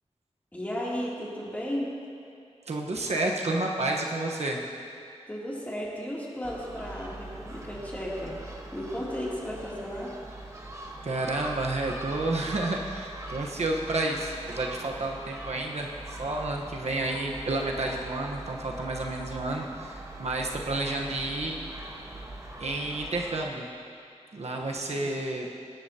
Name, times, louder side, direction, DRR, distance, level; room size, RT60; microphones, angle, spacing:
voice 1, 0.5-1.9 5.3-8.4 8.7-10.1, equal, 15° left, -6 dB, 2.9 m, -34 dB
voice 2, 2.7-4.6 11.0-21.6 22.1-22.2 22.6-23.7 24.3-25.5, right 2 dB, 65° right, 0 dB, 1.1 m, -30 dB
Gull seagull, 6.4-23.4, right 2 dB, 25° right, 1.3 m, -42 dB
20.0 x 11.0 x 2.9 m, 2.4 s
wide cardioid pair, 95°, 12 cm